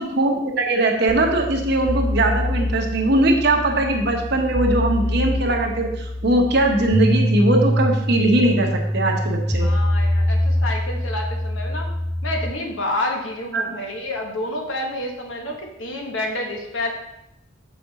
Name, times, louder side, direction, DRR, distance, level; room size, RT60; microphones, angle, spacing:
voice 1, 0.0-9.7 13.5-13.8, right 2 dB, 60° right, 2 dB, 1.0 m, -20 dB
sound 1, 1.1-12.5, left 1 dB, ahead, 0.3 m, -24 dB
voice 2, 9.6-11.9 12.2-16.9, left 1 dB, 80° left, 2 dB, 1.2 m, -29 dB
6.9 x 5.1 x 4.0 m, 0.84 s
head